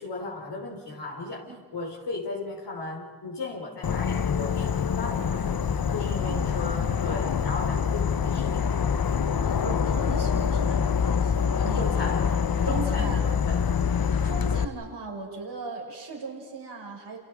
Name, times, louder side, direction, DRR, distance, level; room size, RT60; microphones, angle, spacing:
voice 1, 0.0-1.5 1.7-5.4 5.9-8.8 11.6-12.4 12.6-13.1 13.4-13.8, left 3 dB, 85° left, -1 dB, 5.4 m, -36 dB
Insect / Frog, 3.8-14.7, left 7 dB, 60° left, 1.0 m, -25 dB
voice 2, 6.3-6.6 9.4-12.0 12.7-13.2 14.2-17.2, right 3 dB, 80° right, 0 dB, 5.7 m, -38 dB
29.0 x 29.0 x 5.1 m, 1.5 s
cardioid pair, 50°, 40 cm